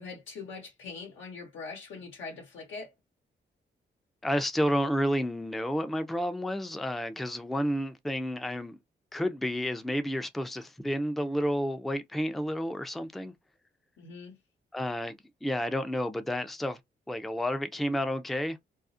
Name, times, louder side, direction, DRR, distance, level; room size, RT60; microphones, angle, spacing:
voice 1, 0.0-2.9 14.0-14.4, left 4 dB, 85° left, 0.8 m, -42 dB
voice 2, 4.2-8.8 9.1-13.3 14.7-16.8 17.1-18.6, equal, ahead, 0.3 m, -30 dB
2.4 x 2.0 x 2.5 m
cardioid pair, 70°, 19 cm